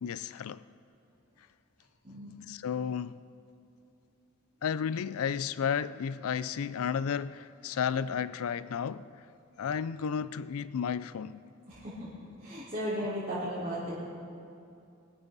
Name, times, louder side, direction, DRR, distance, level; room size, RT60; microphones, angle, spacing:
voice 1, 0.0-0.6 2.5-3.2 4.6-9.1 9.6-11.4, left 7 dB, 80° left, 0.4 m, -32 dB
voice 2, 2.0-2.3 11.7-12.1 12.4-14.0, equal, 30° right, 4.0 m, -35 dB
24.0 x 13.0 x 4.0 m
head